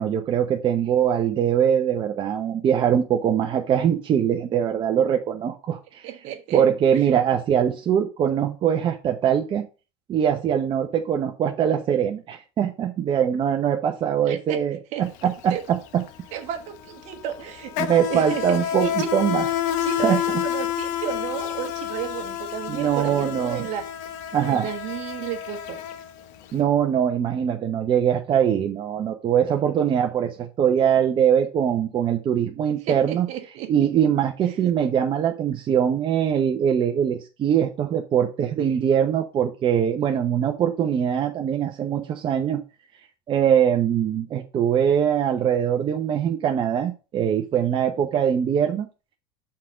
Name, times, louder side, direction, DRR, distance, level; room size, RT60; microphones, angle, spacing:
voice 1, 0.0-6.1 6.5-9.6 10.1-16.0 17.8-19.5 20.0-20.2 22.7-23.7 24.3-24.7 26.5-33.3 33.7-42.6 43.3-48.9, right 9 dB, 40° right, 0.9 m, -22 dB
voice 2, 6.0-6.6 6.9-7.2 14.3-14.6 14.9-15.0 15.5-15.6 16.3-17.7 18.1-19.1 19.8-23.9 24.5-25.8 32.8-33.9, right 11 dB, 60° right, 1.4 m, -33 dB
Insect, 15.1-15.2 15.5-26.5, left 10 dB, 65° left, 1.0 m, -29 dB
5.8 x 3.9 x 5.7 m
supercardioid pair, 105°, 14 cm